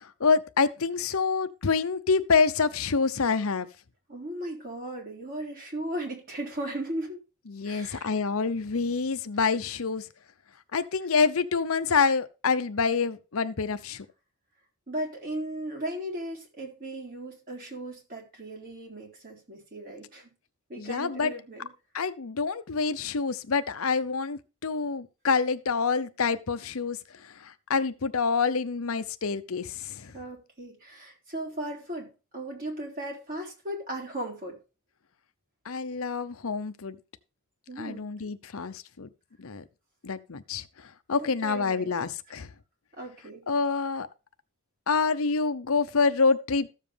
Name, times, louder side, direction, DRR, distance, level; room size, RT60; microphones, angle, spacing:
voice 1, 0.0-3.7 7.5-10.1 10.7-14.0 20.8-21.3 21.9-27.0 27.2-30.1 35.7-37.0 37.8-39.1 39.4-39.6 40.0-42.5 43.5-44.1 44.9-46.7, left 5 dB, 75° left, 0.8 m, -27 dB
voice 2, 4.1-7.2 7.6-8.1 8.4-8.9 14.9-20.3 20.7-21.7 30.1-34.6 37.7-38.1 41.2-41.9 43.0-43.5, right 1 dB, 40° right, 4.0 m, -37 dB
14.0 x 7.4 x 3.5 m
head